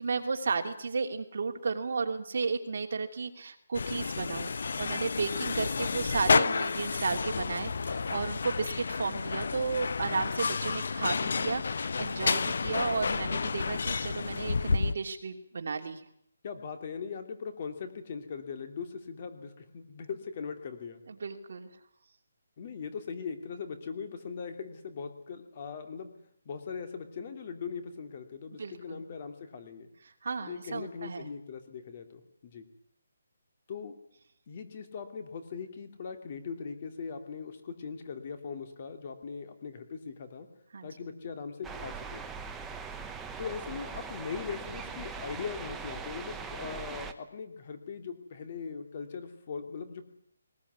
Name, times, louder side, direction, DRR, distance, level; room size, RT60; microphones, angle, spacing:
voice 1, 0.0-16.0 21.1-21.7 28.6-29.0 30.2-31.3 40.7-40.9, right 4 dB, 55° right, 4 dB, 3.0 m, -33 dB
sound 1, 3.7-14.9, left 4 dB, 55° left, 0.9 m, -30 dB
voice 2, 16.4-21.0 22.6-26.1 26.4-29.9 30.5-32.6 33.7-33.9 34.5-40.5 40.8-42.3 43.4-50.0, left 5 dB, 30° left, 7 dB, 2.9 m, -40 dB
sound 2, 41.6-47.1, right 5 dB, 5° right, 1.0 m, -41 dB
20.5 x 20.0 x 9.6 m, 0.70 s
hypercardioid pair, 170°, 0 cm